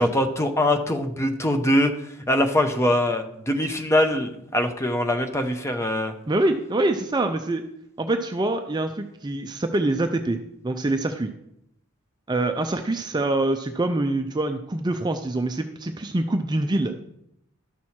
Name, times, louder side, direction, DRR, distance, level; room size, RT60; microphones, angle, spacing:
voice 1, 0.0-1.9 2.3-6.1, left 1 dB, 15° left, 6 dB, 0.7 m, -22 dB
voice 2, 6.3-7.6 8.0-10.4 10.6-11.3 12.3-16.9, right 2 dB, 20° right, 6 dB, 0.4 m, -25 dB
12.0 x 6.2 x 4.3 m, 0.79 s
head